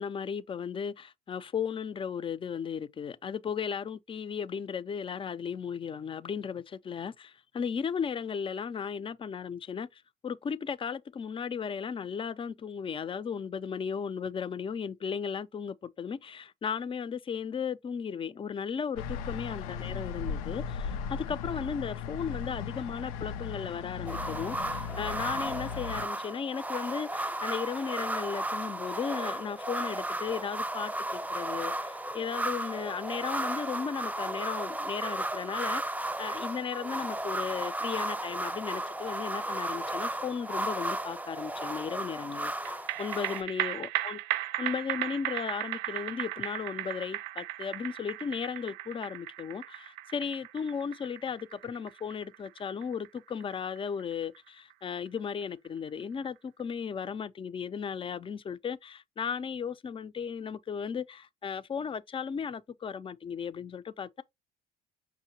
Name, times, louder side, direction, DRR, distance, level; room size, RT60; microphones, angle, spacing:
voice 1, 0.0-35.8 36.2-44.2 44.6-64.2, left 6 dB, 30° left, 0.5 m, -36 dB
sound 1, 19.0-26.1, left 6 dB, 90° left, 0.4 m, -37 dB
sound 2, 24.1-43.4, right 1 dB, 10° right, 0.7 m, -34 dB
canica stereo, 42.6-55.3 55.6-55.7, right 15 dB, 80° right, 0.4 m, -36 dB
5.7 x 2.1 x 2.8 m
supercardioid pair, 70°, 18 cm